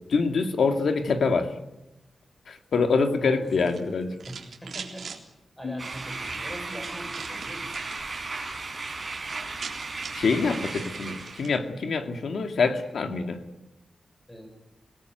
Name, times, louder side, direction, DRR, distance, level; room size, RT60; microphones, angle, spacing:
voice 1, 0.1-1.6 2.5-4.1 5.6-5.8 10.1-13.4, left 4 dB, 75° left, 6 dB, 2.3 m, -25 dB
voice 2, 3.2-3.5 4.3-5.1 5.6-7.7 14.3-14.5, equal, 10° left, 4 dB, 6.5 m, -41 dB
sound 1, 3.4-5.2 5.8-6.3 7.1-8.1 8.4-8.8 9.1-9.2 9.4-11.6, right 5 dB, 70° right, 3.8 m, -43 dB
sound 2, 5.8-11.5, right 3 dB, 25° right, 5.4 m, -35 dB
26.0 x 19.0 x 9.4 m, 0.94 s
wide cardioid pair, 170°, 0 cm